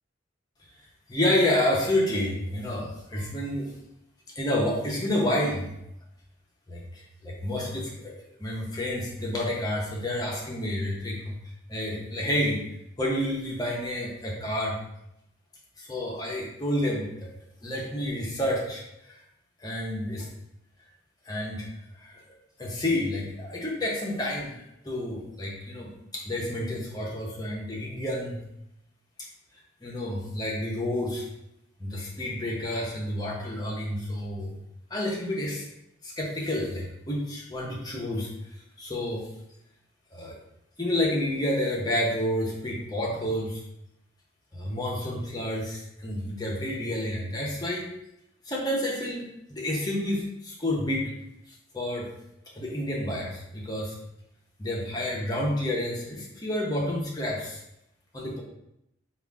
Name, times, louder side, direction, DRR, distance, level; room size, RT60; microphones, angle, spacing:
voice 1, 1.1-3.7 4.4-5.8 6.7-8.1 8.4-11.3 11.7-12.6 13.0-14.8 15.8-17.3 17.6-19.2 19.6-20.3 21.3-21.7 21.9-22.2 22.6-28.4 29.8-31.3 31.8-34.5 34.9-35.6 36.0-38.3 38.8-39.3 40.1-40.4 40.8-43.6 44.5-47.9 48.4-51.1 51.7-52.1 52.5-53.9 54.6-57.6 58.1-58.4, left 1 dB, 20° left, -3 dB, 0.7 m, -29 dB
4.9 x 2.4 x 3.5 m, 0.83 s
head